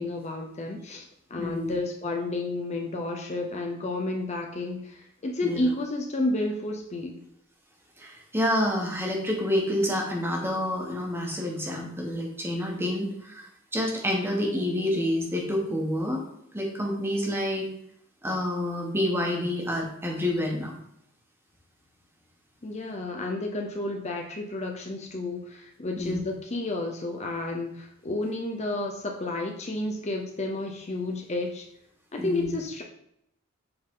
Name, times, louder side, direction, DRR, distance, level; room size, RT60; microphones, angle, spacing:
voice 1, 0.0-7.2 22.6-31.6 32.1-32.8, left 2 dB, 30° left, 2 dB, 0.7 m, -31 dB
voice 2, 1.4-1.7 5.4-5.6 8.0-16.2 16.5-17.7 18.2-20.7 26.0-26.2 32.2-32.5, left 1 dB, 10° right, 0 dB, 1.3 m, -28 dB
7.8 x 4.0 x 3.7 m, 0.75 s
head